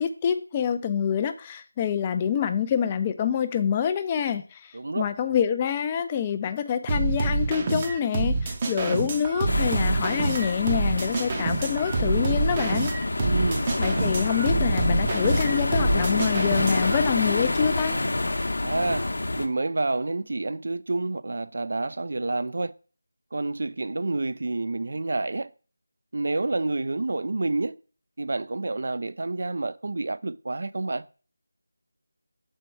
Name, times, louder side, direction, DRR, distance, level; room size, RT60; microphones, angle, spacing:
voice 1, 0.0-12.9 13.8-18.0, left 8 dB, 15° left, 0.4 m, -26 dB
voice 2, 4.7-5.1 13.2-13.7 18.6-19.1 19.4-22.7 23.3-25.5 26.1-27.8 28.2-31.0, right 2 dB, 55° right, 0.4 m, -28 dB
sound 1, 6.9-17.0, right 3 dB, 20° right, 0.7 m, -27 dB
sound 2, 9.5-19.5, left 2 dB, 60° left, 0.8 m, -27 dB
6.0 x 4.5 x 4.5 m
figure-of-eight pair, 165°, 0 cm